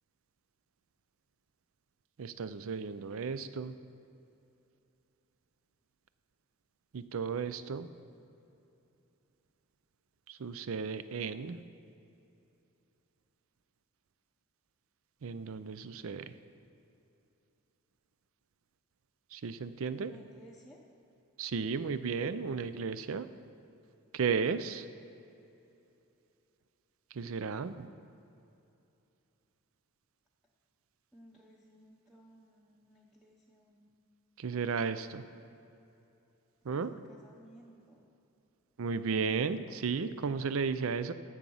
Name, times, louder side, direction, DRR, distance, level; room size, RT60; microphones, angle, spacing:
voice 1, 2.2-3.8 6.9-7.9 10.3-11.6 15.2-16.3 19.3-20.1 21.4-23.3 24.1-24.9 27.1-27.9 34.4-35.2 36.6-36.9 38.8-41.1, right 5 dB, 65° right, 13 dB, 0.5 m, -34 dB
voice 2, 19.9-20.8 31.1-34.0 36.7-38.1, right 1 dB, ahead, -4 dB, 0.7 m, -58 dB
14.5 x 6.1 x 5.5 m, 2.8 s
head